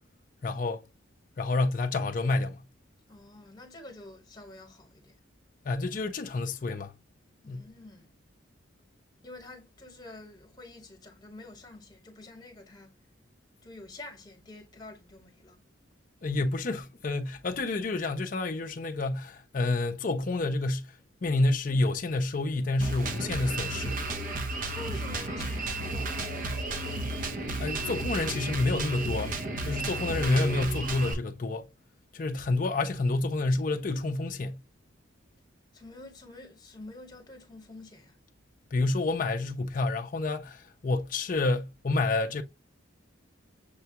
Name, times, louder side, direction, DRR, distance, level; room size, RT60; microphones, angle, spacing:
voice 1, 0.4-0.8 1.4-2.6 5.6-6.9 7.5-7.6 16.2-20.9 21.2-24.0 27.6-29.3 29.6-31.7 32.1-34.6 38.7-42.4, left 2 dB, 40° left, 0.4 m, -29 dB
voice 2, 3.1-5.2 7.4-8.1 9.2-12.9 13.6-15.6 24.5-26.7 35.7-38.2, left 2 dB, 20° left, 1.2 m, -47 dB
Drum kit, 22.8-31.1, right 2 dB, 40° right, 0.6 m, -33 dB
6.7 x 2.2 x 2.7 m
head